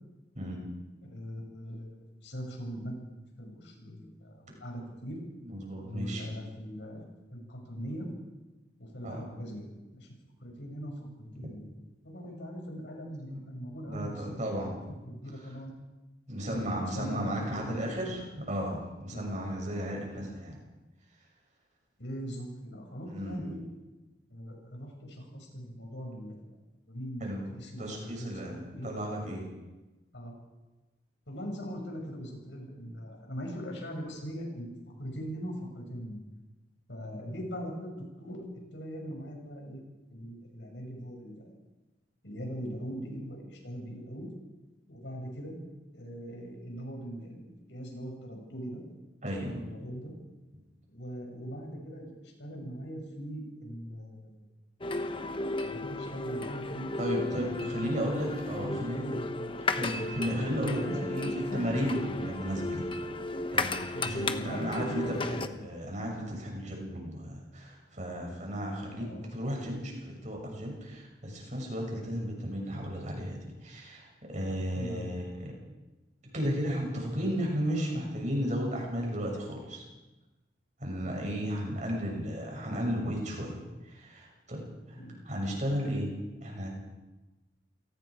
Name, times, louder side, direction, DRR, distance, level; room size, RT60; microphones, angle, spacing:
voice 1, 1.0-3.0 3.4-5.2 5.8-8.1 8.8-9.7 9.9-10.1 10.4-11.7 12.0-15.7 16.5-17.9 19.1-19.3 20.1-20.3 22.0-23.6 24.3-26.4 26.9-27.3 27.5-28.9 30.1-30.3 31.3-36.2 36.9-38.5 38.7-39.8 40.1-41.6 42.2-44.3 44.9-45.5 45.9-48.8 49.4-50.1 50.9-54.3 55.6-57.2 57.6-58.3 58.6-59.6 60.1-60.2 60.7-61.7 62.0-62.2 63.9-65.6 66.0-66.2 69.0-69.2 74.7-75.1 82.0-82.3 84.9-85.2, equal, 85° left, 1 dB, 6.7 m, -41 dB
voice 2, 5.4-6.2 9.0-9.3 11.4-11.5 13.3-13.4 13.9-15.0 16.3-20.6 23.1-23.5 27.2-27.5 27.8-29.5 49.2-49.6 57.0-59.1 59.6-62.9 63.5-75.5 76.3-79.8 80.8-83.6 83.9-85.0 85.3-86.1 86.4-86.7, equal, 45° right, 0 dB, 7.0 m, -34 dB
sound 1, 54.8-65.5, left 2 dB, 30° left, 1.0 m, -34 dB
28.5 x 18.5 x 5.0 m, 1.1 s
head